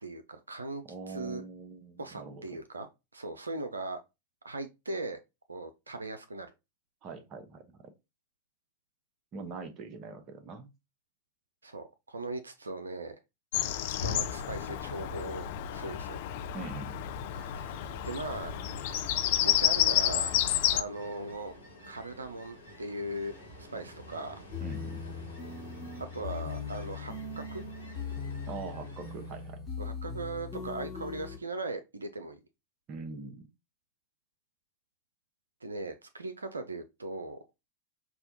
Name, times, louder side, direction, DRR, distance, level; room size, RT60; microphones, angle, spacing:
voice 1, 0.0-1.4 2.0-2.9 3.1-4.0 4.4-5.2 5.5-6.5 11.6-13.2 14.0-15.5 15.7-16.2 18.0-18.5 19.4-20.3 20.7-21.5 21.8-24.4 26.1-27.6 29.8-32.4 35.6-37.4, right 2 dB, 75° right, 0.4 m, -39 dB
voice 2, 0.9-2.6 7.0-7.8 9.3-10.7 16.5-17.1 24.6-25.0 28.5-29.6 32.9-33.5, right 4 dB, 35° right, 0.8 m, -43 dB
Bird vocalization bird call bird song, 13.5-20.8, left 11 dB, 50° left, 0.4 m, -30 dB
Ocean, 16.8-29.5, equal, 80° left, 1.5 m, -50 dB
sound 1, 24.5-31.4, left 5 dB, 15° left, 1.3 m, -39 dB
5.5 x 2.3 x 2.7 m
figure-of-eight pair, 90°, 0 cm